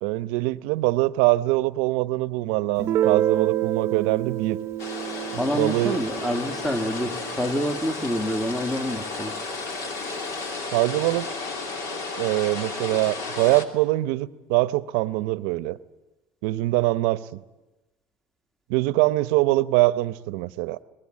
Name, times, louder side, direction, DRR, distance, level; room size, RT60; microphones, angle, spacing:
voice 1, 0.0-4.6 5.3-6.0 10.7-11.3 12.2-15.8 16.4-17.4 18.7-20.8, right 19 dB, 80° right, 0.7 m, -23 dB
Guitar, 2.8-8.3, right 12 dB, 45° right, 0.7 m, -28 dB
sound 1, 4.8-13.7, left 3 dB, 60° left, 3.0 m, -33 dB
voice 2, 5.4-9.4, equal, 5° left, 1.3 m, -27 dB
23.5 x 20.0 x 8.5 m
supercardioid pair, 105°, 6 cm